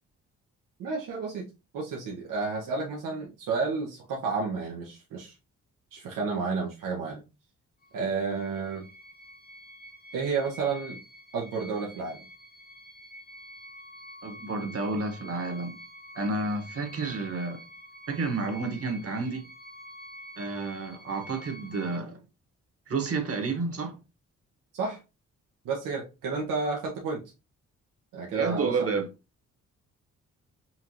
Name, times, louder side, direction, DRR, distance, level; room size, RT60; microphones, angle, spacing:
voice 1, 0.8-1.5 1.7-5.3 5.9-7.2 7.9-8.9 10.1-11.0 11.3-12.2 24.7-25.0 25.6-27.2 28.1-29.0, right 4 dB, 80° right, 1.1 m, -31 dB
sound 1, 7.8-22.0, equal, 30° left, 0.8 m, -48 dB
voice 2, 14.2-15.8 16.1-17.6 18.1-19.4 20.4-22.2 22.9-24.0 28.3-29.1, right 3 dB, 45° right, 1.4 m, -30 dB
5.7 x 2.5 x 2.9 m
supercardioid pair, 55°, 32 cm